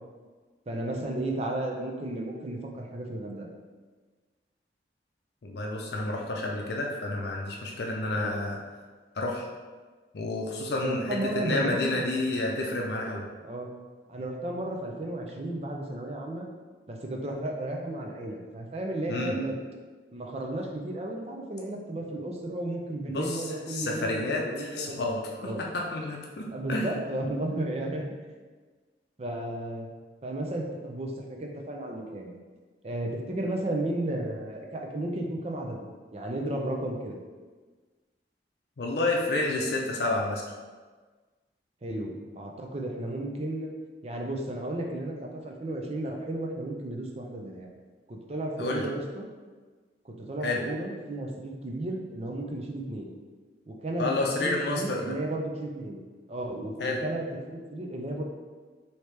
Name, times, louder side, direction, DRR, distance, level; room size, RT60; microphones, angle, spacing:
voice 1, 0.7-3.5 8.2-8.3 10.8-12.0 13.4-13.7 14.1-16.5 16.9-19.6 20.1-25.0 25.4-25.6 26.5-28.0 29.2-29.9 30.2-32.4 32.8-37.2 41.8-43.7 44.0-47.7 48.1-49.3 50.0-53.1 53.7-54.1 54.4-56.0 56.3-58.2, right 1 dB, 35° right, 1 dB, 0.5 m, -33 dB
voice 2, 5.4-8.6 9.2-9.5 10.1-13.2 19.1-19.3 23.1-25.2 25.4-26.9 38.8-40.4 48.6-48.9 50.4-50.6 54.0-55.1 56.8-57.0, left 2 dB, 65° left, -1 dB, 0.5 m, -30 dB
4.7 x 2.8 x 3.2 m, 1.4 s
head